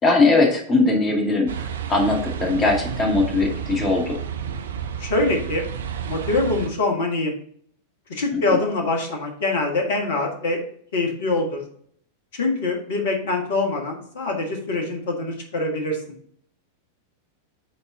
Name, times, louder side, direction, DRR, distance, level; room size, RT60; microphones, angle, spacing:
voice 1, 0.0-1.5 1.9-4.2 8.3-8.6, left 3 dB, 25° left, 0 dB, 2.2 m, -20 dB
sound 1, 1.5-6.7, right 8 dB, 65° right, 0.5 m, -31 dB
voice 2, 5.0-5.7 6.0-7.3 8.1-10.6 10.9-11.6 12.3-16.0, left 2 dB, 55° left, 2 dB, 1.6 m, -24 dB
8.7 x 4.2 x 3.9 m, 0.62 s
figure-of-eight pair, 90°, 0 cm